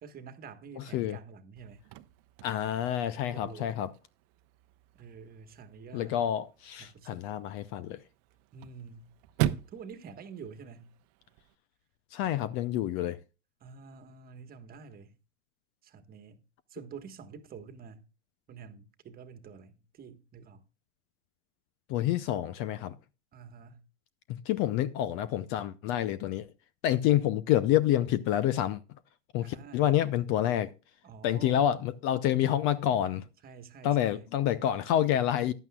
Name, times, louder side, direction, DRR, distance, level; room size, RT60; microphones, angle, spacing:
voice 1, 0.0-1.8 3.3-3.8 4.9-6.1 6.8-7.2 8.5-9.1 9.7-10.9 13.6-15.2 15.8-16.4 16.7-18.1 18.5-20.6 23.3-23.8 29.4-29.8 31.0-31.6 33.4-34.3, right 6 dB, 25° right, 1.4 m, -48 dB
Chirp tweet / Car / Slam, 1.6-11.5, right 13 dB, 40° right, 0.8 m, -40 dB
voice 2, 2.4-3.9 5.9-8.0 12.1-13.2 21.9-23.0 24.3-26.5 26.8-28.8 29.3-30.7 31.2-33.2 33.8-35.5, left 11 dB, 35° left, 0.6 m, -28 dB
14.5 x 11.0 x 2.3 m
hypercardioid pair, 115°, 36 cm